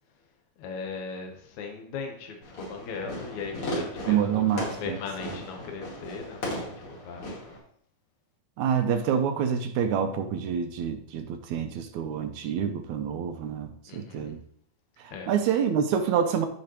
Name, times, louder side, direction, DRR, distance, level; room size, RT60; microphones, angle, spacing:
voice 1, 0.6-7.4 13.9-14.3 15.1-15.4, left 5 dB, 70° left, 3 dB, 2.4 m, -38 dB
Fireworks, 2.4-7.6, left 1 dB, 45° left, 2.9 m, -37 dB
voice 2, 4.1-5.0 8.6-14.4 15.3-16.5, right 8 dB, 75° right, 7 dB, 1.9 m, -27 dB
15.0 x 5.0 x 3.0 m, 0.64 s
omnidirectional pair, 3.6 m